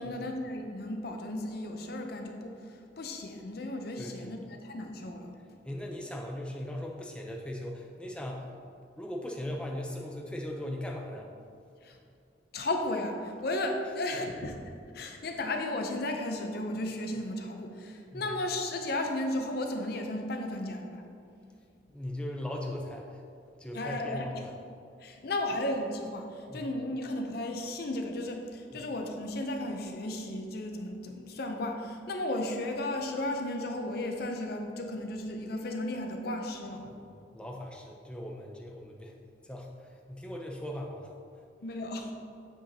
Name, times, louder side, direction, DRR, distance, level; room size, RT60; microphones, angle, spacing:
voice 1, 0.0-5.3 11.8-12.0 12.5-21.0 23.7-24.5 25.0-36.9 41.6-42.1, left 1 dB, 55° left, 3 dB, 0.6 m, -34 dB
voice 2, 4.0-4.3 5.6-8.5 9.0-11.3 14.1-14.2 18.1-18.3 21.9-23.2 23.6-24.5 26.5-26.7 28.7-28.8 36.9-39.1 39.4-41.4, left 1 dB, 5° left, 0 dB, 0.6 m, -39 dB
8.9 x 5.0 x 2.8 m, 2.4 s
head